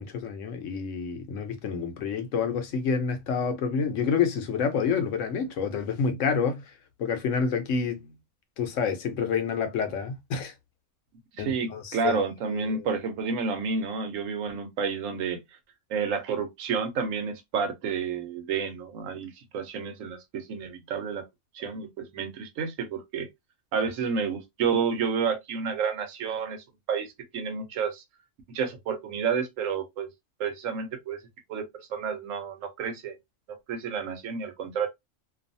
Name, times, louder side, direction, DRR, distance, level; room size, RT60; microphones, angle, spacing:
voice 1, 0.0-6.6 7.0-8.1 8.6-10.5 11.4-12.9, left 6 dB, 75° left, 1.0 m, -28 dB
voice 2, 11.3-15.4 15.9-21.3 21.5-23.3 23.7-28.0 28.5-30.1 30.4-31.2 31.5-31.6 31.9-33.2 33.7-34.9, right 5 dB, 85° right, 1.1 m, -30 dB
2.6 x 2.4 x 2.5 m
omnidirectional pair, 1.3 m